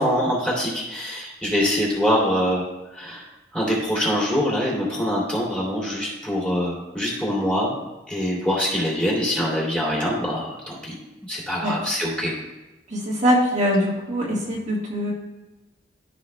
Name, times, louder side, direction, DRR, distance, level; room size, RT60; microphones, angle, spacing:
voice 1, 0.0-2.7 2.9-3.2 3.5-7.7 8.1-10.9 11.3-12.3, equal, 5° left, -5 dB, 2.6 m, -24 dB
voice 2, 12.9-15.1, equal, 40° right, -5 dB, 1.5 m, -22 dB
14.0 x 5.9 x 2.2 m, 1.1 s
head